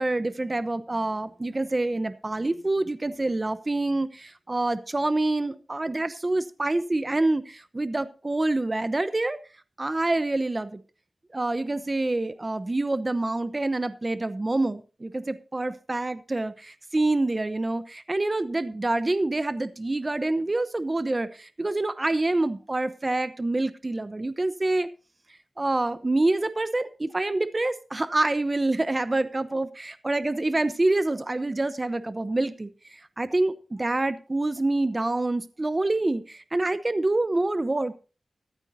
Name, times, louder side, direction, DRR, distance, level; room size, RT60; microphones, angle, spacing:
voice 1, 0.0-9.4 9.8-10.8 11.3-24.9 25.6-37.9, right 2 dB, 30° right, 12 dB, 0.9 m, -26 dB
14.5 x 13.5 x 2.8 m, 0.34 s
wide cardioid pair, 70°, 0 cm